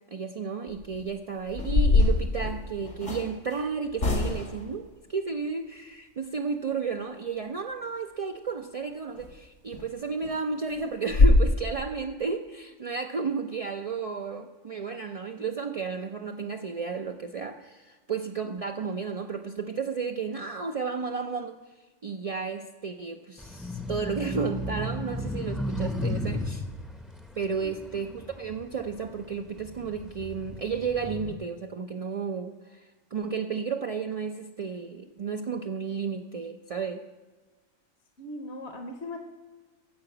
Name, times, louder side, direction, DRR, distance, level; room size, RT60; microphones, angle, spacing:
voice 1, 0.1-21.6 22.0-26.6 27.4-37.0, right 5 dB, 55° right, 4 dB, 0.4 m, -33 dB
sound 1, 0.7-1.0 1.5-3.3 4.0-4.6 9.2-9.3 9.7-9.8 10.2-10.3 10.7-10.8 11.1-11.4, left 3 dB, 80° left, 2.2 m, -22 dB
sound 2, 23.4-28.9 29.5-31.3, left 1 dB, ahead, 0.6 m, -34 dB
voice 2, 27.6-28.1 38.2-39.2, left 1 dB, 60° left, 4 dB, 1.2 m, -40 dB
13.5 x 4.9 x 7.8 m, 1.3 s
omnidirectional pair, 1.3 m